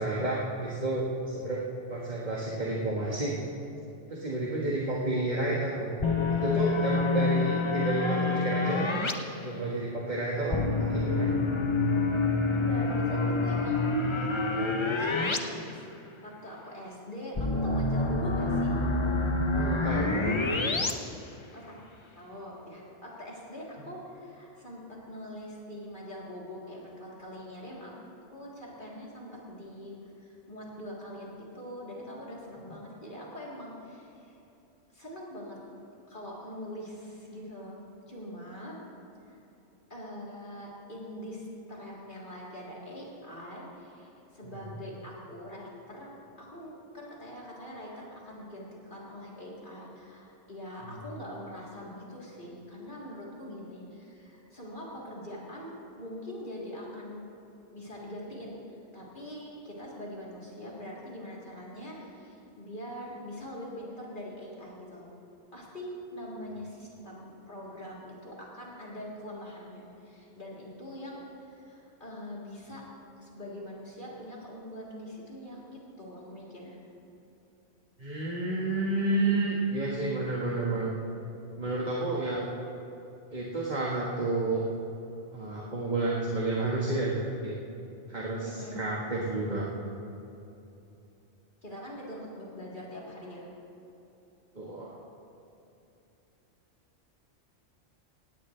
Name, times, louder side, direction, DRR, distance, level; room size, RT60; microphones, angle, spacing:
voice 1, 0.0-1.6 1.9-3.4 4.1-5.9 6.3-8.9 9.4-11.4 19.5-20.4 78.0-80.9 81.6-82.4 83.3-84.7 85.3-87.5 88.1-89.7 94.5-95.0, right 2 dB, 40° right, -5 dB, 1.7 m, -30 dB
sound 1, 6.0-9.1 10.5-15.4 15.7-15.8 17.4-20.9, left 3 dB, 30° left, 0.7 m, -27 dB
voice 2, 12.5-18.8 21.5-21.8 22.2-27.9 28.3-34.4 34.9-35.6 36.1-37.8 38.1-38.8 39.3-39.4 39.9-46.1 46.4-57.3 57.7-65.1 65.5-72.8 73.2-76.8 88.4-88.9 91.6-93.5, equal, 45° left, -5 dB, 3.5 m, -43 dB
19.0 x 16.5 x 3.3 m, 2.9 s
omnidirectional pair, 1.2 m